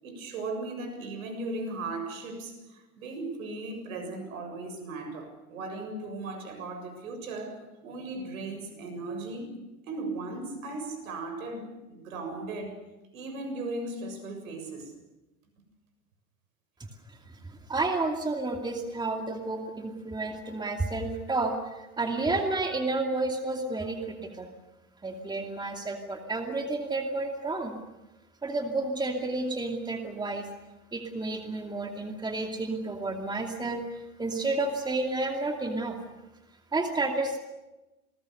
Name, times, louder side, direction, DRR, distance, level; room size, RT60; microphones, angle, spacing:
voice 1, 0.0-9.5 9.9-12.8 13.1-14.9, right 2 dB, 70° right, 7 dB, 7.3 m, -37 dB
voice 2, 17.7-24.5 25.0-27.7 28.4-30.5 30.9-36.0 36.7-37.4, right 2 dB, 10° right, 3 dB, 2.5 m, -31 dB
28.5 x 20.5 x 6.7 m, 1.0 s
hypercardioid pair, 95°, 43 cm